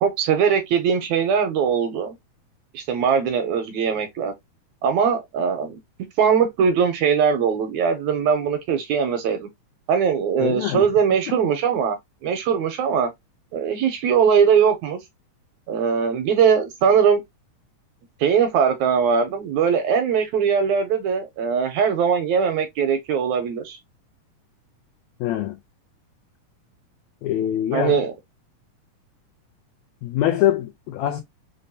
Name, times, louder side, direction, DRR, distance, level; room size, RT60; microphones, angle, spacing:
voice 1, 0.0-2.2 2.7-4.3 4.8-5.8 6.2-9.5 9.9-13.1 13.5-15.0 15.7-17.2 18.2-23.8 27.7-28.1, right 7 dB, 80° right, 1.7 m, -21 dB
voice 2, 10.4-10.9 11.3-11.4 25.2-25.6 27.2-28.0 30.0-31.2, left 12 dB, 85° left, 1.6 m, -23 dB
5.2 x 2.2 x 2.6 m
omnidirectional pair, 3.7 m